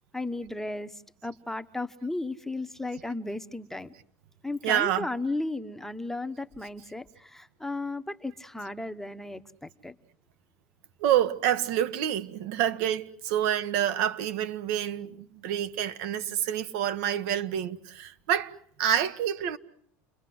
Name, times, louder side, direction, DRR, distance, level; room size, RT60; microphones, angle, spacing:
voice 1, 0.1-3.9 4.4-9.9, left 2 dB, 5° left, 1.0 m, -35 dB
voice 2, 4.6-5.1 11.0-18.5 18.8-19.6, right 10 dB, 70° right, 1.6 m, -27 dB
30.0 x 22.0 x 7.8 m
supercardioid pair, 125°, 8 cm